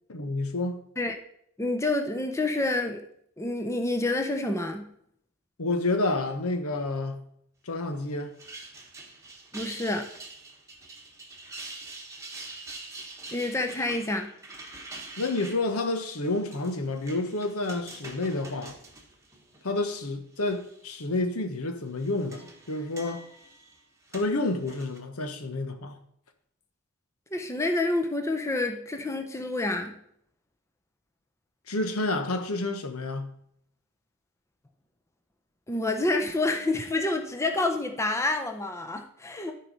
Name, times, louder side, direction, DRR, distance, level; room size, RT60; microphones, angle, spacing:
voice 1, 0.1-0.8 5.6-7.2 7.7-8.3 15.2-18.8 19.6-23.2 24.1-26.0 31.7-33.3, left 2 dB, 80° left, 1.1 m, -29 dB
voice 2, 1.6-3.0 3.4-4.9 9.5-10.0 13.3-14.3 27.3-29.9 35.7-39.5, left 2 dB, 15° left, 0.7 m, -28 dB
sound 1, 8.2-20.0 20.4-21.0 21.8-25.0, right 2 dB, 15° right, 1.3 m, -45 dB
12.5 x 4.5 x 5.3 m
head